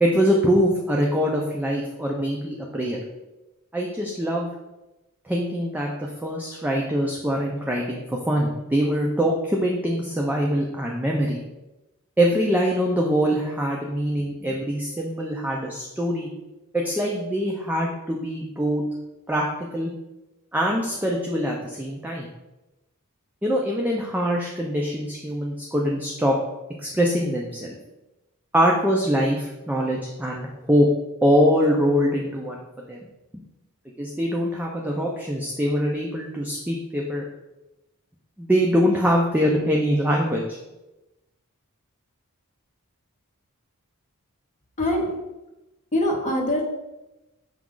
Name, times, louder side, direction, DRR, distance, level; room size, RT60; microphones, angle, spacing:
voice 1, 0.0-3.0 3.7-4.5 5.3-11.4 12.2-16.3 16.7-18.9 19.3-19.5 19.7-19.9 20.5-22.3 23.4-26.4 26.8-27.8 28.5-30.9 31.2-32.6 32.9-33.0 34.0-37.2 38.4-40.6, equal, 5° right, -1 dB, 0.4 m, -23 dB
voice 2, 44.8-45.1 45.9-46.7, left 1 dB, 35° left, 0 dB, 0.8 m, -23 dB
5.9 x 2.4 x 3.7 m, 1.0 s
head